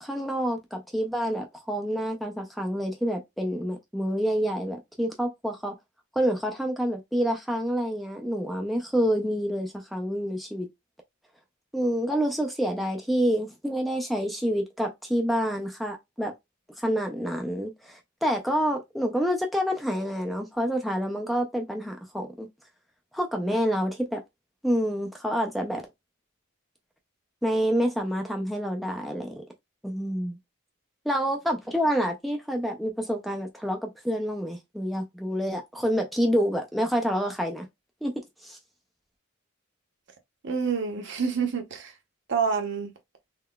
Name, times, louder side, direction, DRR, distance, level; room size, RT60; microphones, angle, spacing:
voice 1, 0.0-5.7 6.2-10.7 11.7-16.3 16.8-22.5 23.1-24.2 24.6-25.8 27.4-29.4 29.8-30.4 31.1-37.6 38.0-38.1 38.4-38.6, equal, ahead, 0.3 m, -28 dB
voice 2, 40.4-41.9 42.3-42.9, right 6 dB, 55° right, 0.7 m, -27 dB
3.7 x 2.1 x 2.2 m
head